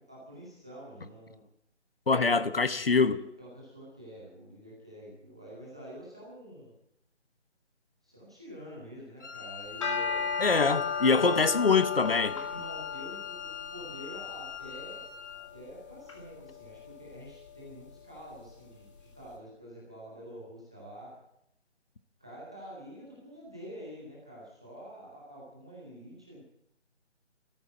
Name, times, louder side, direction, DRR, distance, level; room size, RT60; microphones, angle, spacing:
voice 1, 0.0-1.4 2.1-6.7 8.0-10.3 11.2-11.5 12.3-18.8 19.1-21.2 22.2-26.4, equal, 5° right, 0.8 m, -47 dB
voice 2, 2.1-3.2 10.4-12.3, left 4 dB, 50° left, 0.9 m, -24 dB
Wind instrument woodwind instrument, 9.2-15.5, left 8 dB, 80° left, 3.1 m, -42 dB
sound 1, 9.7-19.0, left 6 dB, 25° left, 2.3 m, -36 dB
14.0 x 13.0 x 7.5 m
figure-of-eight pair, 155°, 35 cm